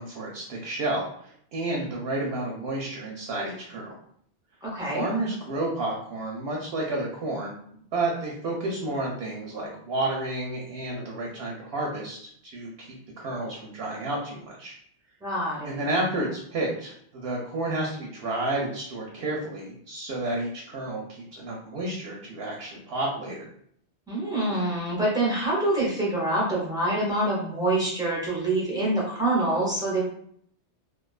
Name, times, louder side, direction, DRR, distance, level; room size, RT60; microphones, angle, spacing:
voice 1, 0.0-3.9 4.9-7.6 7.9-12.9 13.2-14.7 15.6-23.5, right 2 dB, 65° right, -2 dB, 0.7 m, -31 dB
voice 2, 4.6-5.0 15.2-15.8 24.1-30.0, right 1 dB, 5° right, -5 dB, 0.6 m, -26 dB
2.4 x 2.2 x 2.3 m, 0.66 s
omnidirectional pair, 1.2 m